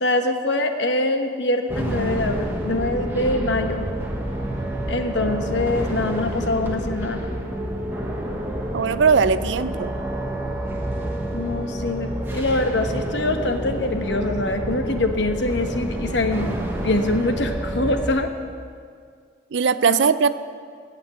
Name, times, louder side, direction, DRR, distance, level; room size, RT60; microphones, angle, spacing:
voice 1, 0.0-3.9 4.9-7.4 11.3-16.5 16.8-18.3 19.9-20.0, left 2 dB, 70° left, 6 dB, 1.0 m, -24 dB
sound 1, 1.7-18.1, right 1 dB, 10° right, 1.2 m, -28 dB
voice 2, 8.7-10.0 19.5-20.3, right 5 dB, 75° right, 14 dB, 0.5 m, -19 dB
15.5 x 6.0 x 8.2 m, 2.1 s
head